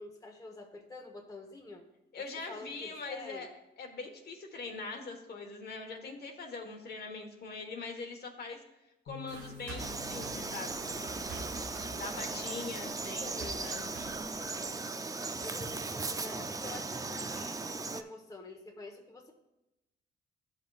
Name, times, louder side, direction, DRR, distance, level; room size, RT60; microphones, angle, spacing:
voice 1, 0.0-1.9 2.5-3.5 13.2-13.6 15.4-19.3, left 2 dB, 15° left, 2 dB, 1.0 m, -47 dB
voice 2, 2.1-3.5 3.8-8.6 9.0-11.2 11.9-13.9, left 4 dB, 55° left, 3 dB, 1.3 m, -42 dB
sound 1, 9.1-15.3, left 7 dB, 80° left, 1.4 m, -55 dB
sound 2, 9.3-14.7, right 3 dB, 90° right, 1.2 m, -48 dB
Frog, 9.8-18.0, right 3 dB, 15° right, 0.4 m, -37 dB
12.5 x 5.7 x 2.4 m, 0.94 s
cardioid pair, 90°, 20 cm